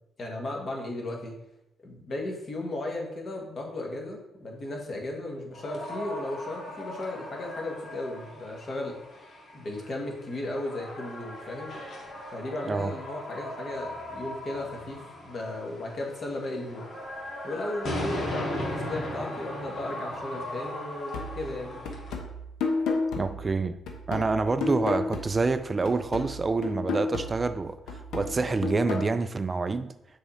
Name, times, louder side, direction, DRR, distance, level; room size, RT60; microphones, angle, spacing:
voice 1, 0.2-1.4 1.8-8.9 9.5-11.7 12.3-15.0 15.2-16.9 17.4-21.8, left 2 dB, 45° left, 1.6 m, -35 dB
sound 1, 5.5-22.1, left 1 dB, 60° left, 1.8 m, -38 dB
sound 2, 21.1-25.6 25.9-29.1, left 3 dB, 85° left, 0.9 m, -32 dB
voice 2, 23.2-23.8 24.1-29.9, right 3 dB, 30° right, 0.3 m, -27 dB
6.6 x 3.6 x 4.2 m
cardioid pair, 90°, 0 cm